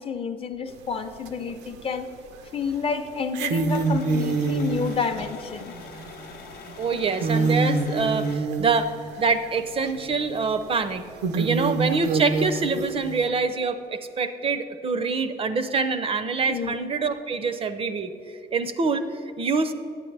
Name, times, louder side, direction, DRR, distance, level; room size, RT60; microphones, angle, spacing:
voice 1, 0.0-2.1 2.5-5.7 16.5-16.9, left 5 dB, 35° left, 8 dB, 0.5 m, -29 dB
sound 1, 0.7-0.8 1.2-2.0 2.3-2.4 3.2-9.6 9.9-10.0 10.6-10.7 11.2-13.2, right 4 dB, 90° right, 0.6 m, -26 dB
sound 2, 3.6-8.4, left 6 dB, 70° left, 0.7 m, -43 dB
voice 2, 6.8-11.0 11.4-19.7, right 4 dB, 35° right, 10 dB, 0.4 m, -25 dB
10.5 x 8.5 x 3.3 m, 2.6 s
cardioid pair, 110°, 17 cm